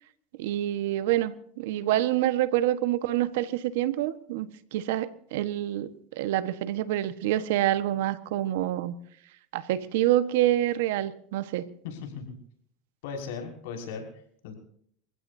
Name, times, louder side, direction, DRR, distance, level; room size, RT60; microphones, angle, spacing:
voice 1, 0.4-8.9 9.5-11.6, right 13 dB, 80° right, 12 dB, 1.3 m, -27 dB
voice 2, 11.8-12.3 13.0-14.0 14.4-14.5, left 6 dB, 80° left, 2 dB, 6.0 m, -37 dB
29.0 x 16.0 x 2.8 m, 0.65 s
supercardioid pair, 120°, 0 cm